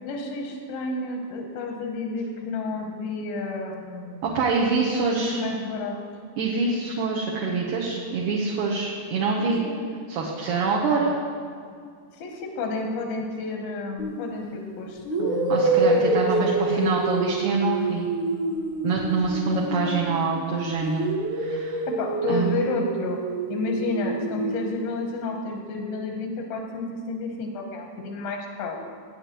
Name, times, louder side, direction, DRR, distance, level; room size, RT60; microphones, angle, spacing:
voice 1, 0.0-4.2 4.9-6.0 9.4-9.8 12.2-16.0 16.4-16.9 19.5-20.0 22.0-23.2 23.5-28.8, left 3 dB, 85° left, 1 dB, 2.8 m, -31 dB
voice 2, 4.2-5.4 6.4-9.6 10.1-11.1 15.5-18.1 18.8-21.0 21.3-21.8 22.3-22.7, right 4 dB, 70° right, -3 dB, 2.3 m, -25 dB
sound 1, 14.0-14.2 15.0-20.4 20.8-24.7, right 2 dB, 50° right, 1.4 m, -27 dB
16.5 x 8.7 x 3.0 m, 2.2 s
omnidirectional pair, 4.0 m